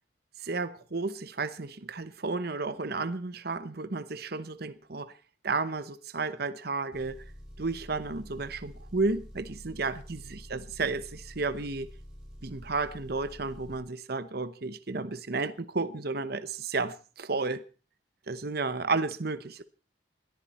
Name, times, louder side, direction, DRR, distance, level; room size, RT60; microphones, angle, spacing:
voice 1, 0.4-5.1 5.4-7.2 7.6-11.9 12.4-17.6 18.3-19.6, right 3 dB, 55° right, 0.9 m, -32 dB
Engine, 6.9-13.8, equal, 5° right, 4.9 m, -47 dB
21.0 x 14.5 x 4.3 m
head